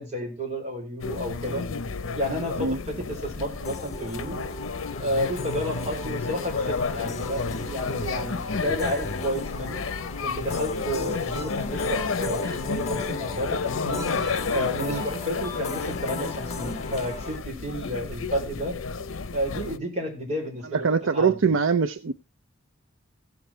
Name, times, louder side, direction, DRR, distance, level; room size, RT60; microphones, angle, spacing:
voice 1, 0.0-1.7 2.1-4.4 5.0-9.9 10.2-14.1 14.5-18.8 19.3-21.5, equal, 35° right, 4.8 m, -31 dB
sound 1, 1.0-19.8, left 4 dB, 85° left, 0.7 m, -32 dB
sound 2, 3.6-17.4, left 2 dB, 35° left, 1.4 m, -37 dB
sound 3, 11.3-13.1 13.9-16.2, left 1 dB, 10° left, 4.7 m, -43 dB
voice 2, 20.7-22.1, right 5 dB, 75° right, 0.5 m, -23 dB
16.0 x 7.2 x 4.4 m
head